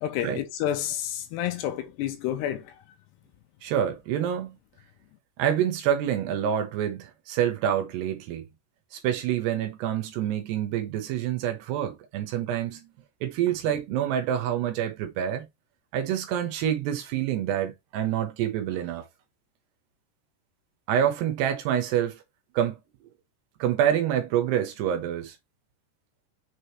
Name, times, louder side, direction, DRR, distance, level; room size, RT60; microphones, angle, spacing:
voice 1, 0.0-2.6, left 11 dB, 75° left, 2.7 m, -29 dB
voice 2, 3.6-4.6 5.4-8.4 8.9-12.9 13.2-15.5 15.9-19.0 20.9-22.2 22.5-22.8 23.6-25.4, right 10 dB, 75° right, 3.1 m, -27 dB
6.6 x 5.1 x 3.1 m
omnidirectional pair, 5.2 m